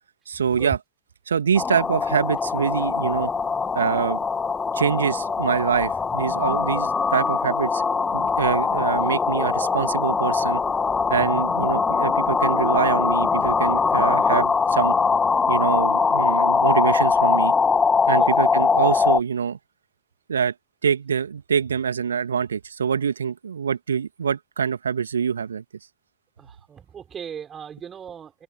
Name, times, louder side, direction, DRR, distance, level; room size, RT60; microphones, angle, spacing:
voice 1, 0.3-0.8 1.3-3.3 3.7-4.2 4.7-7.8 8.1-10.6 11.1-14.9 15.5-17.5 18.1-19.6 20.3-20.5 20.8-25.6, right 7 dB, 70° right, 2.3 m, -25 dB
sound 1, 1.5-19.2, left 5 dB, 15° left, 2.0 m, -22 dB
voice 2, 26.4-28.4, right 8 dB, 25° right, 6.0 m, -37 dB
figure-of-eight pair, 90°, 0 cm